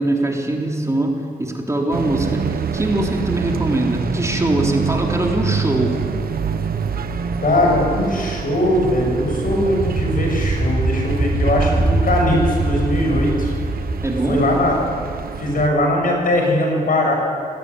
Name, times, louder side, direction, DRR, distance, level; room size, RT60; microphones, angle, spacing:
voice 1, 0.0-6.0 14.0-14.5, right 1 dB, 20° right, 1 dB, 3.5 m, -22 dB
sound 1, 1.9-15.7, right 6 dB, 85° right, 1.1 m, -26 dB
voice 2, 7.4-13.5 14.3-14.8 15.4-17.1, left 1 dB, 65° left, 0 dB, 7.1 m, -20 dB
sound 2, 8.5-15.2, right 2 dB, 45° right, 4.5 m, -23 dB
19.0 x 18.0 x 9.6 m, 2.7 s
cardioid pair, 65°, 15 cm